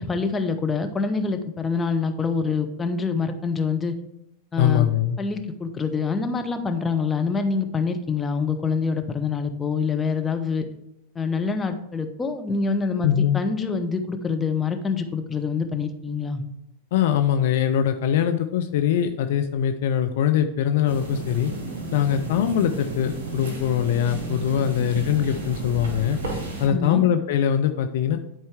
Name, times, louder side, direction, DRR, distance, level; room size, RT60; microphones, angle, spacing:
voice 1, 0.0-3.9 4.5-4.9 5.2-10.7 11.1-16.4 26.7-27.0, left 5 dB, 15° left, 5 dB, 0.7 m, -26 dB
voice 2, 4.6-5.2 13.0-13.4 16.9-21.5 21.9-26.2 26.6-28.2, left 9 dB, 55° left, 8 dB, 0.4 m, -22 dB
sound 1, 20.9-26.7, right 3 dB, 55° right, 2.0 m, -32 dB
10.5 x 4.4 x 3.5 m, 0.78 s
figure-of-eight pair, 90°, 0 cm